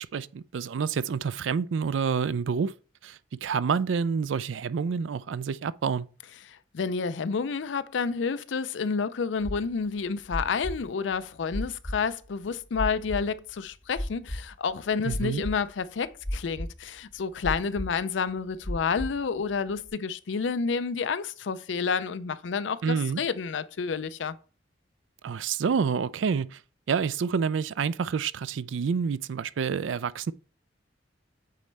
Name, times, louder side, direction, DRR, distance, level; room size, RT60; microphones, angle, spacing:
voice 1, 0.0-2.7 3.0-6.1 15.0-15.4 22.8-23.2 25.2-26.6 26.9-30.3, right 6 dB, 85° right, 0.4 m, -28 dB
voice 2, 6.5-24.4, left 5 dB, 75° left, 0.4 m, -30 dB
sound 1, 9.4-18.0 18.3-19.9, equal, 20° left, 2.6 m, -35 dB
8.5 x 4.1 x 3.3 m
head